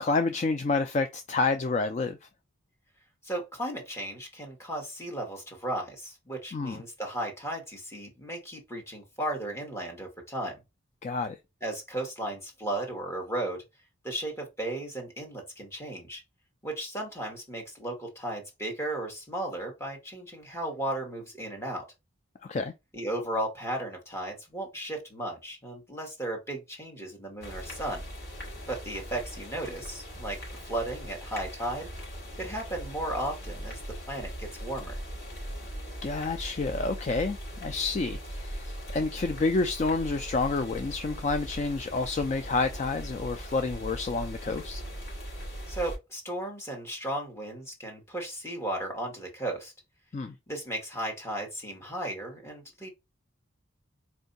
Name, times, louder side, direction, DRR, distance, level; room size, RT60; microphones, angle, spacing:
voice 1, 0.0-2.2 6.5-6.8 11.0-11.4 22.4-22.7 36.0-44.8 50.1-50.3, left 3 dB, 35° left, 0.3 m, -29 dB
voice 2, 3.2-10.6 11.6-13.6 14.0-16.2 16.6-21.8 22.9-28.0 28.6-30.4 30.7-31.9 32.4-33.8 34.1-35.0 45.7-49.7 50.5-52.9, right 1 dB, 15° left, 1.3 m, -35 dB
sound 1, 27.4-46.0, equal, 75° left, 3.1 m, -40 dB
4.5 x 2.6 x 3.9 m
head